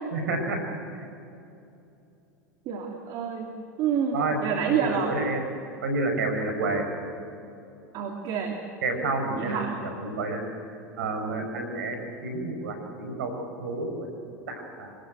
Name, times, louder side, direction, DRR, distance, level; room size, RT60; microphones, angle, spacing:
voice 1, 0.1-0.6 4.1-4.4 4.6-5.4 5.8-6.8 8.8-10.4 11.0-14.1 14.5-14.9, right 3 dB, 80° right, 5 dB, 5.8 m, -30 dB
voice 2, 2.7-3.5 3.8-5.1 7.9-8.6 9.4-9.7, right 7 dB, 50° right, 2 dB, 2.9 m, -28 dB
27.0 x 19.0 x 7.8 m, 2.7 s
hypercardioid pair, 90°, 9 cm